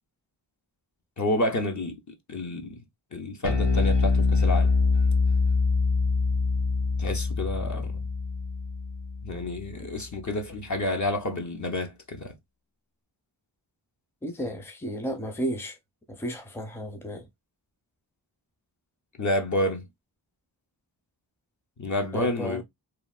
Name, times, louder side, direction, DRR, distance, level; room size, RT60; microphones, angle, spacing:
voice 1, 1.2-2.8 3.1-4.7 7.0-7.9 9.2-12.3 19.2-19.9 21.8-22.6, left 1 dB, 40° left, 0.7 m, -29 dB
Bass guitar, 3.4-9.9, left 4 dB, 75° left, 0.8 m, -24 dB
voice 2, 14.2-15.7 16.1-17.2 22.1-22.6, equal, 5° left, 0.6 m, -33 dB
3.2 x 2.3 x 2.3 m
wide cardioid pair, 75°, 43 cm